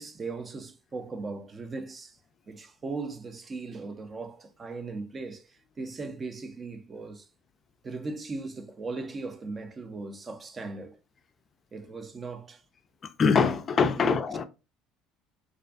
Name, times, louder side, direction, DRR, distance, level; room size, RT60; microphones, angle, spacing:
voice 1, 0.0-2.2 2.5-7.3 7.8-11.0 11.7-12.6 14.0-14.2, right 3 dB, 30° right, 0.4 m, -38 dB
voice 2, 13.0-14.4, left 5 dB, 35° left, 0.3 m, -24 dB
2.4 x 2.4 x 2.3 m
supercardioid pair, 100°, 0 cm